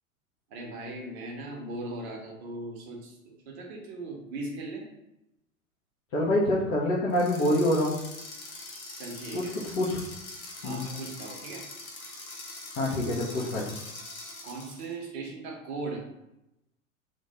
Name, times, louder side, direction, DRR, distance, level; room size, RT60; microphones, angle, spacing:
voice 1, 0.5-3.2 3.5-4.8 9.0-9.5 10.6-11.6 13.4-13.5 14.4-16.0, right 2 dB, 50° right, 0 dB, 0.8 m, -38 dB
voice 2, 6.1-7.9 9.3-9.4 9.8-10.0 10.6-10.8 12.8-13.6, left 1 dB, 25° left, -7 dB, 0.3 m, -25 dB
sound 1, 7.1-14.9, left 2 dB, 80° left, 0.7 m, -43 dB
2.2 x 2.2 x 2.8 m, 0.88 s
figure-of-eight pair, 90°, 41 cm